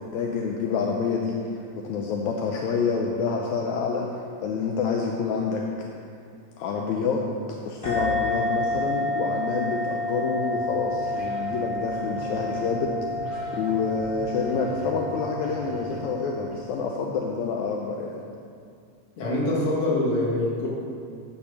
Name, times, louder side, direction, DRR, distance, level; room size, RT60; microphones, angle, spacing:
voice 1, 0.0-1.4 1.8-4.1 4.4-5.6 6.6-7.2 7.6-12.9 13.6-18.2, left 5 dB, 80° left, 0 dB, 2.0 m, -27 dB
sound 1, 7.8-16.9, left 2 dB, 20° left, 0.9 m, -30 dB
sound 2, 10.4-16.7, right 2 dB, ahead, 1.6 m, -41 dB
voice 2, 19.2-20.7, left 1 dB, 50° left, -5 dB, 2.4 m, -24 dB
10.0 x 4.4 x 6.9 m, 2.4 s
omnidirectional pair, 3.4 m